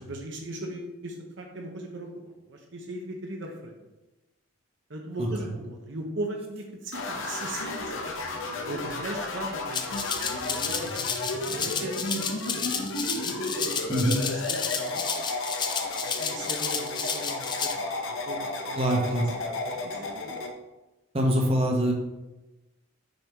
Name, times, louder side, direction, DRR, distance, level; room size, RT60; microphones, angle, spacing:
voice 1, 0.0-2.1 2.5-3.8 4.9-13.9 14.7-15.1 16.2-18.8 19.4-20.3, right 1 dB, 60° right, 1 dB, 0.8 m, -39 dB
sound 1, 6.9-20.5, left 2 dB, 70° left, 0.7 m, -33 dB
Rattle (instrument), 9.7-17.7, left 6 dB, 20° left, 0.4 m, -31 dB
voice 2, 13.9-14.2 18.7-19.3 21.1-21.9, equal, 30° right, 0 dB, 0.9 m, -24 dB
6.5 x 4.5 x 3.4 m, 1.0 s
head